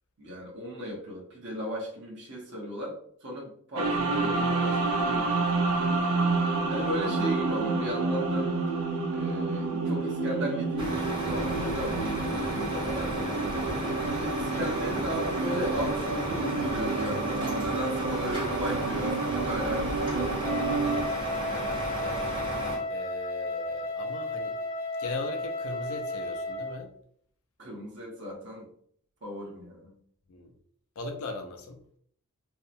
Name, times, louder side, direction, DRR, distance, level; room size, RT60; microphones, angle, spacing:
voice 1, 0.2-5.5 6.4-8.5 9.1-13.7 14.1-20.6 27.6-28.7 29.2-29.9, equal, 50° right, -3 dB, 0.8 m, -36 dB
sound 1, 3.8-21.1, right 3 dB, 70° right, 0.3 m, -29 dB
Truck, 10.8-22.8, right 1 dB, 20° right, 0.8 m, -34 dB
Wind instrument woodwind instrument, 20.4-26.8, left 2 dB, 30° left, 0.7 m, -33 dB
voice 2, 21.5-22.3 22.9-24.6 25.0-26.9 30.3-30.5 31.0-31.8, left 3 dB, 65° left, 4 dB, 0.4 m, -39 dB
2.7 x 2.1 x 2.5 m, 0.63 s
head